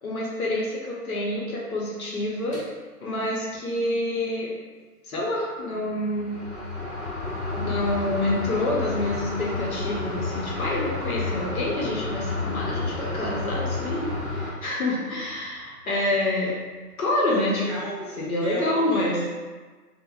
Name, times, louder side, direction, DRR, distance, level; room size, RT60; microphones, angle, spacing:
voice 1, 0.0-2.6 3.0-4.5 5.0-6.3 7.6-16.5 17.0-17.7 18.2-19.3, left 1 dB, 65° left, -4 dB, 0.7 m, -27 dB
sound 1, 2.5-2.6 5.4-5.5 5.8-14.5, left 2 dB, 20° left, 1.3 m, -30 dB
voice 2, 17.3-19.3, right 1 dB, 15° right, -17 dB, 0.6 m, -36 dB
3.2 x 2.0 x 2.3 m, 1.4 s
hypercardioid pair, 170°, 47 cm